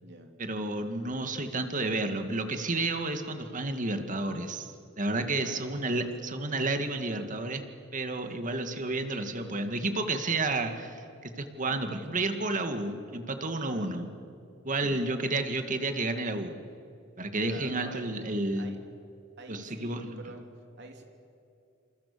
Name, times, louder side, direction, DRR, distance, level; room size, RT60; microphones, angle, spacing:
voice 1, 0.4-7.6 7.9-14.1 14.6-16.5 17.2-18.7 19.5-20.2, right 2 dB, 40° right, 7 dB, 2.2 m, -31 dB
voice 2, 5.4-5.8 6.2-6.3 8.2-8.5 11.7-12.2 13.7-13.9 14.8-15.0 17.5-18.1 18.6-18.8 19.4-20.5 20.8-21.0, right 2 dB, 55° right, 4 dB, 3.5 m, -46 dB
29.0 x 27.5 x 7.0 m, 2.5 s
head